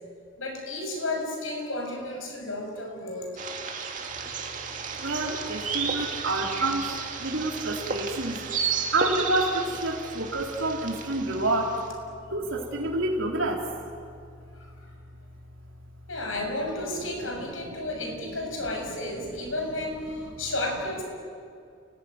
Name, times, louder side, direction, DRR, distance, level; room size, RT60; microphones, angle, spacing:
voice 1, 0.4-3.3 3.6-3.8 16.1-21.0, left 1 dB, 75° left, 2 dB, 6.9 m, -32 dB
sound 1, 3.4-11.9, right 5 dB, 40° right, 2.4 m, -33 dB
voice 2, 5.0-6.8 7.2-8.3 8.9-9.5 9.8-11.7 12.3-12.4 12.7-13.6, right 2 dB, 70° right, -1 dB, 3.8 m, -28 dB
29.5 x 19.5 x 9.7 m, 2.3 s
head